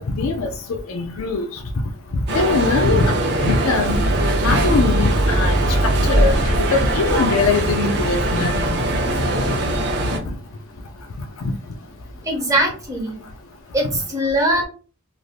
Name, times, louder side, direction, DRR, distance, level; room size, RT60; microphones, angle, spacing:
voice 1, 0.0-1.5 2.1-4.0 4.4-5.6 6.1-8.8 10.3-10.4, left 3 dB, 75° left, 0.4 m, -21 dB
sound 1, 2.3-10.2, right 1 dB, 55° right, 0.7 m, -22 dB
sound 2, 3.9-11.2 11.6-12.4, right 1 dB, 40° left, 0.8 m, -23 dB
voice 2, 12.2-13.2 13.7-14.6, right 1 dB, 15° right, 0.8 m, -21 dB
3.1 x 2.6 x 2.3 m
head